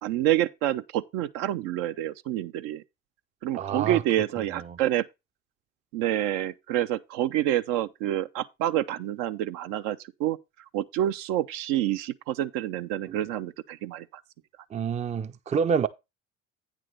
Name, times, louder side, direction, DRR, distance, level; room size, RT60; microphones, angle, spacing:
voice 1, 0.0-2.8 3.4-5.1 5.9-10.4 10.7-14.1, right 13 dB, 60° right, 0.6 m, -28 dB
voice 2, 3.6-4.0 4.5-4.8 13.1-13.2 14.7-15.9, right 6 dB, 20° right, 0.5 m, -28 dB
9.1 x 3.6 x 6.5 m
figure-of-eight pair, 55°, 38 cm